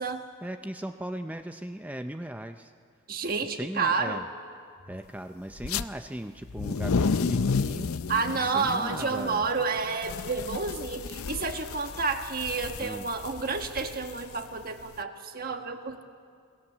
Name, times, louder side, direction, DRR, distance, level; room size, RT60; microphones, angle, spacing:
voice 1, 0.4-2.7 3.5-4.3 4.9-7.9 8.3-9.5 12.8-13.1, right 1 dB, 5° right, 7 dB, 0.5 m, -38 dB
voice 2, 3.1-4.2 8.1-16.0, right 4 dB, 45° right, 6 dB, 1.5 m, -30 dB
sound 1, 5.6-5.8 6.4-14.9, left 4 dB, 85° left, 0.6 m, -32 dB
27.5 x 18.0 x 7.3 m, 2.2 s
head